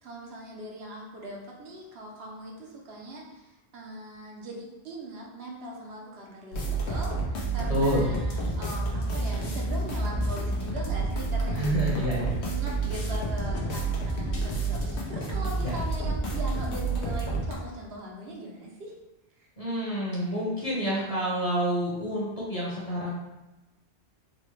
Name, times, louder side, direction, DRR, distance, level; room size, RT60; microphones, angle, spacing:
voice 1, 0.0-12.0 12.4-18.9, right 1 dB, 70° right, -1 dB, 0.9 m, -40 dB
sound 1, 6.5-17.5, right 2 dB, 85° left, 1.0 m, -29 dB
voice 2, 7.7-8.1 11.5-12.4 15.6-15.8 19.6-23.1, equal, 40° left, -6 dB, 0.9 m, -28 dB
4.0 x 2.1 x 3.1 m, 1.0 s
omnidirectional pair, 1.1 m